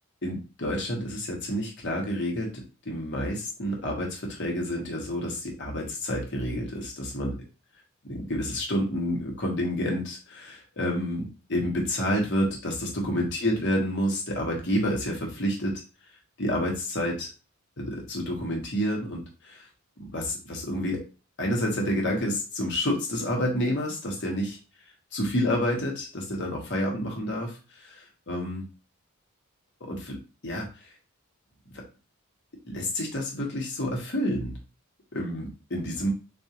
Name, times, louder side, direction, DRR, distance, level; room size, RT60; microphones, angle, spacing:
voice 1, 0.2-7.4 8.0-15.7 16.4-17.3 17.8-19.7 20.1-21.0 21.4-24.6 25.1-28.6 29.8-30.2 30.4-30.9 32.6-34.5 35.1-36.1, equal, 55° left, 0 dB, 1.2 m, -29 dB
3.7 x 2.6 x 2.9 m, 0.32 s
head